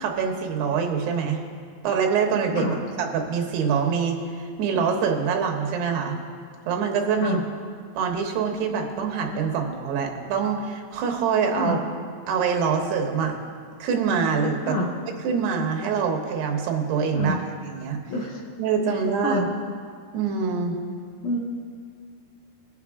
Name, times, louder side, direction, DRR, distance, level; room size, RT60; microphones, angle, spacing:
voice 1, 0.0-1.4 1.8-6.2 6.7-7.4 8.0-11.8 12.3-13.3 13.8-14.8 15.2-17.4 17.6-18.0 18.6-19.4 20.1-20.8, right 6 dB, 90° right, 3 dB, 3.2 m, -25 dB
voice 2, 18.1-18.4 18.9-19.5 21.2-21.4, left 1 dB, 70° left, -1 dB, 2.1 m, -27 dB
20.5 x 7.3 x 3.6 m, 2.1 s
omnidirectional pair, 4.6 m